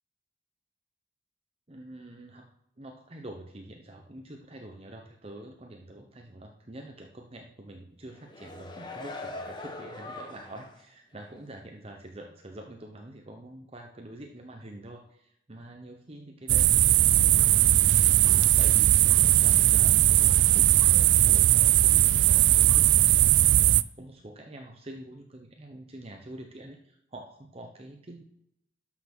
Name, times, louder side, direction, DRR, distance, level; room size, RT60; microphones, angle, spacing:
voice 1, 1.7-2.5 2.8-18.0 18.3-28.2, right 1 dB, 35° right, 3 dB, 0.9 m, -46 dB
sound 1, 8.1-10.8 11.2-11.3, left 2 dB, 25° left, 1.3 m, -41 dB
sound 2, 16.5-23.8, right 14 dB, 75° right, 0.3 m, -20 dB
12.0 x 6.0 x 6.1 m, 0.77 s
head